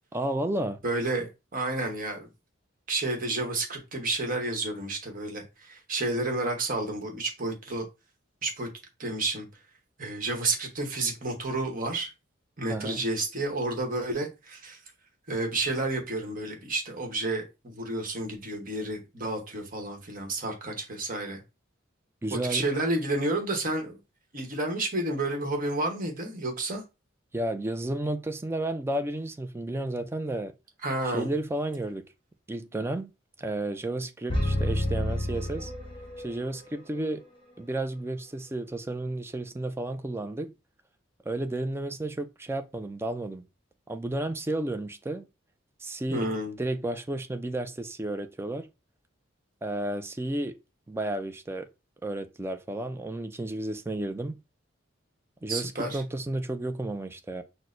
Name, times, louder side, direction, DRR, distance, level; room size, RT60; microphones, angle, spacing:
voice 1, 0.1-0.8 12.7-13.0 22.2-22.7 27.3-30.5 31.0-32.0 32.5-33.1 33.4-35.7 36.2-37.2 37.6-40.5 41.3-43.5 43.9-45.3 45.8-48.7 49.6-50.6 50.9-51.7 52.0-54.4 55.4-57.4, right 1 dB, 10° right, 0.3 m, -32 dB
voice 2, 0.8-2.3 2.9-7.8 8.4-8.7 9.0-9.5 10.0-12.1 12.6-14.8 15.3-21.4 22.3-24.0 24.3-26.8 30.8-31.3 46.1-46.6 55.5-56.0, right 2 dB, 45° right, 1.0 m, -30 dB
sound 1, 34.3-36.4, left 1 dB, 25° left, 1.0 m, -29 dB
6.1 x 2.1 x 2.5 m
head